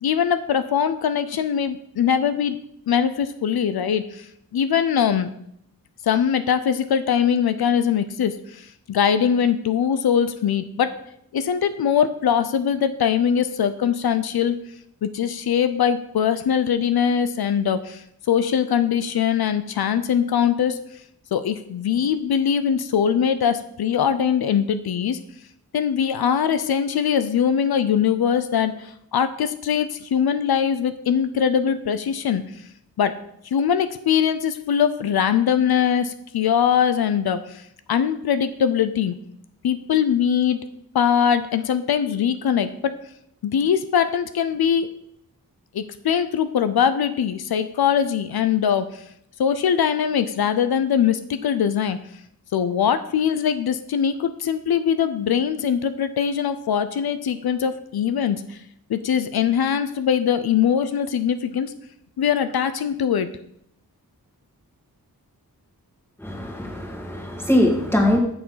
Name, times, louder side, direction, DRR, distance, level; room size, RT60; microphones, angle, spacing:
voice 1, 0.0-2.6 2.9-4.3 4.5-5.3 6.0-10.9 11.3-14.6 15.0-20.8 21.3-25.2 25.7-32.4 33.0-33.2 33.5-37.6 37.9-39.2 39.6-40.6 40.9-43.0 43.4-44.9 45.7-48.9 49.4-52.0 52.5-58.6 58.9-61.7 62.2-63.3, left 8 dB, 80° left, 11 dB, 0.5 m, -22 dB
voice 2, 66.2-68.2, left 1 dB, 5° left, 1 dB, 1.9 m, -21 dB
6.9 x 6.2 x 5.6 m, 0.74 s
wide cardioid pair, 90°, 37 cm